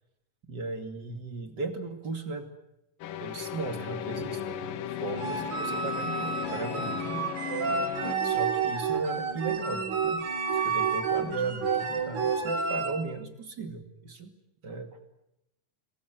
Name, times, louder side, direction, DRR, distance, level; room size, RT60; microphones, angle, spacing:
voice 1, 0.5-2.5 3.2-4.7 5.0-7.5 8.2-14.3 14.6-15.0, right 3 dB, 35° right, 8 dB, 2.7 m, -37 dB
sound 1, 3.0-8.2, left 10 dB, 85° left, 2.9 m, -36 dB
sound 2, 5.1-13.0, right 5 dB, 60° right, 4.2 m, -30 dB
27.5 x 21.5 x 9.2 m, 0.85 s
omnidirectional pair, 3.8 m